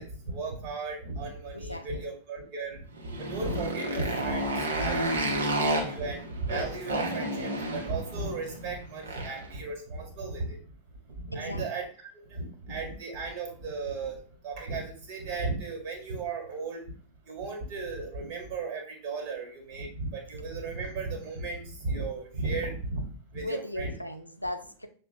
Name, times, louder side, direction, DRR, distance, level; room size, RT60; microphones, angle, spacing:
voice 1, 0.0-10.6 11.2-11.8 12.3-16.8 17.3-23.9, right 3 dB, 45° right, 2 dB, 1.6 m, -35 dB
voice 2, 1.5-1.9 11.3-11.6 23.4-24.9, left 1 dB, 90° left, 7 dB, 0.5 m, -37 dB
Motorcycle, 2.9-9.5, right 1 dB, 70° right, 1.0 m, -31 dB
6.1 x 2.4 x 3.3 m, 0.42 s
figure-of-eight pair, 90°, 0 cm